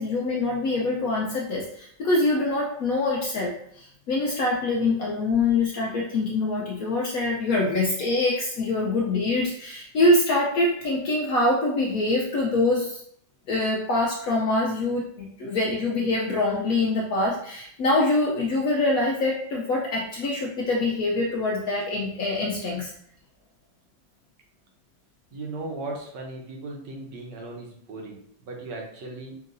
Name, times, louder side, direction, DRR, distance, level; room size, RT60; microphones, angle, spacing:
voice 1, 0.0-13.0 13.5-22.9, left 2 dB, 80° left, -2 dB, 0.7 m, -24 dB
voice 2, 25.3-29.4, right 2 dB, 65° right, 0 dB, 1.4 m, -37 dB
5.4 x 2.7 x 2.6 m, 0.66 s
omnidirectional pair, 2.2 m